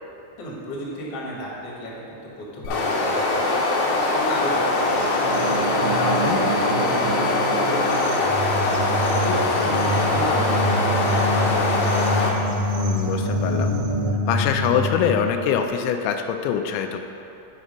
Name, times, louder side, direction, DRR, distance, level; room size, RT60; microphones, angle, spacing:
voice 1, 0.4-5.0 5.4-8.7 9.1-11.7, left 1 dB, 50° left, -5 dB, 1.9 m, -32 dB
sound 1, 2.6-12.3, left 2 dB, 75° left, 2.3 m, -22 dB
sound 2, 4.7-14.1, right 3 dB, 85° right, 2.2 m, -32 dB
voice 2, 6.1-6.4 12.8-13.7 14.3-17.0, left 8 dB, 90° left, 6 dB, 2.9 m, -24 dB
sound 3, 8.2-15.6, left 1 dB, 65° right, 3.2 m, -26 dB
8.2 x 5.1 x 5.3 m, 2.8 s
omnidirectional pair, 5.1 m